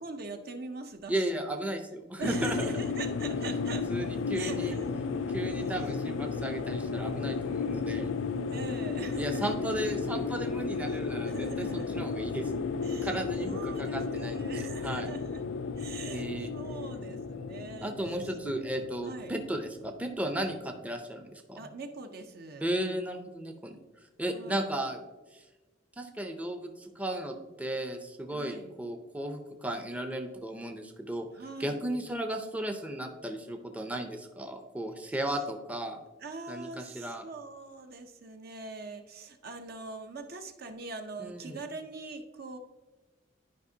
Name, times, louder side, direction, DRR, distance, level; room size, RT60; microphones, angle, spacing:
voice 1, 0.0-1.5 2.2-3.9 4.3-4.9 5.3-5.4 8.5-9.5 10.9-11.0 11.3-11.9 12.8-13.1 13.4-15.4 15.8-17.9 19.0-19.3 21.6-22.7 24.3-24.8 28.3-28.7 31.3-31.8 36.2-42.6, right 3 dB, 55° right, 6 dB, 0.7 m, -42 dB
voice 2, 1.1-2.7 3.9-4.7 5.3-8.1 9.2-12.5 13.0-15.1 16.1-16.5 17.8-21.6 22.6-23.8 24.2-25.0 25.3-25.4 26.0-31.3 31.6-36.0 36.5-37.2 41.2-41.6, right 1 dB, 10° right, 5 dB, 0.5 m, -35 dB
sound 1, 2.2-20.6, left 4 dB, 85° left, 0.4 m, -34 dB
10.5 x 5.1 x 2.7 m, 1.2 s
head